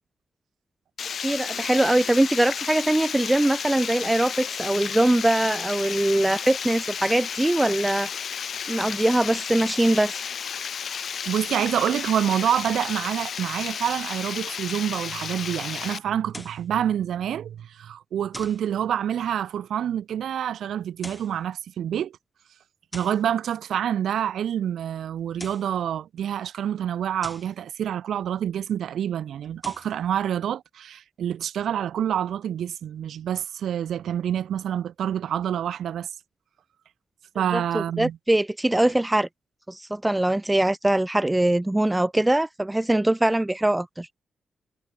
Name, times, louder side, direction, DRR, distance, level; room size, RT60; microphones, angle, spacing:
Water, 1.0-16.0, left 7 dB, 50° left, 1.5 m, -32 dB
voice 1, 1.2-8.1 8.7-10.2 37.5-39.3 39.7-44.1, right 1 dB, 10° right, 0.3 m, -22 dB
voice 2, 11.2-22.2 22.9-36.1 37.3-38.2, right 9 dB, 75° right, 1.3 m, -27 dB
sound 1, 16.3-16.7 18.3-18.7 20.9-21.4 22.9-23.3 25.2-25.8 27.2-27.6 29.4-30.0, left 1 dB, 10° left, 2.1 m, -42 dB
wide cardioid pair, 170°, 0 cm